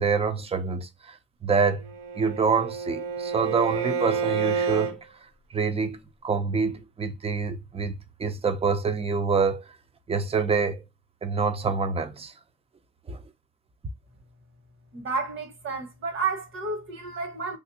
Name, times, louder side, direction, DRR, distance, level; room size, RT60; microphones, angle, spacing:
voice 1, 0.0-1.8 2.2-5.0 5.5-9.6 10.1-10.8 11.2-12.3 13.1-13.2, right 5 dB, 30° right, 0.5 m, -26 dB
Bowed string instrument, 1.8-5.0, right 6 dB, 90° right, 0.9 m, -29 dB
voice 2, 14.9-17.6, right 4 dB, 70° right, 1.4 m, -31 dB
3.4 x 2.6 x 2.7 m
wide cardioid pair, 130°, 21 cm